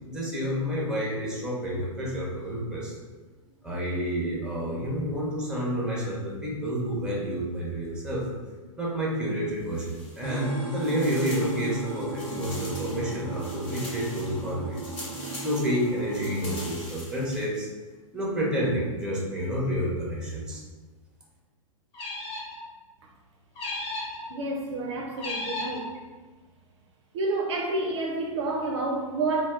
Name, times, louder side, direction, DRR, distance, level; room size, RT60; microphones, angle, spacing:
voice 1, 0.1-2.9 3.6-8.2 8.8-14.9 15.4-17.7 18.1-20.6, equal, 5° right, -4 dB, 0.7 m, -29 dB
sound 1, 9.6-10.5 10.8-17.4, left 1 dB, 55° left, 1.2 m, -43 dB
sound 2, 10.2-16.7, right 2 dB, 80° left, 1.2 m, -35 dB
sound 3, 21.9-22.6 23.6-24.2 25.2-25.8, left 2 dB, 30° left, 0.7 m, -34 dB
voice 2, 24.3-25.9 27.1-29.5, right 2 dB, 55° right, 1 dB, 0.4 m, -29 dB
2.2 x 2.2 x 3.3 m, 1.3 s
figure-of-eight pair, 105°, 18 cm